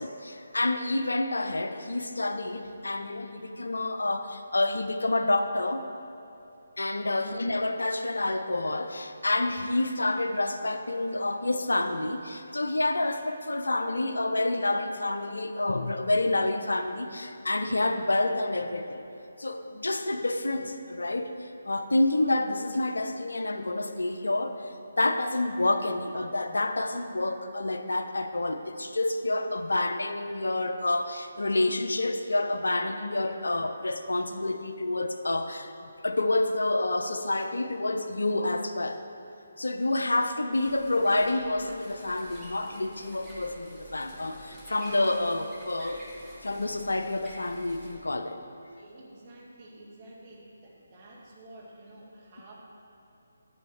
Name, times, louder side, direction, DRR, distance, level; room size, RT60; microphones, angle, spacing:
voice 1, 0.0-5.9 6.8-19.0 19.4-24.7 25.0-39.0 39.6-46.0 46.4-48.4, left 2 dB, 75° left, 8 dB, 0.6 m, -28 dB
sound 1, 40.5-47.9, equal, 10° right, 2.2 m, -48 dB
voice 2, 48.8-52.5, right 1 dB, 35° right, -3 dB, 2.0 m, -50 dB
12.0 x 7.2 x 4.5 m, 2.9 s
figure-of-eight pair, 150°, 0 cm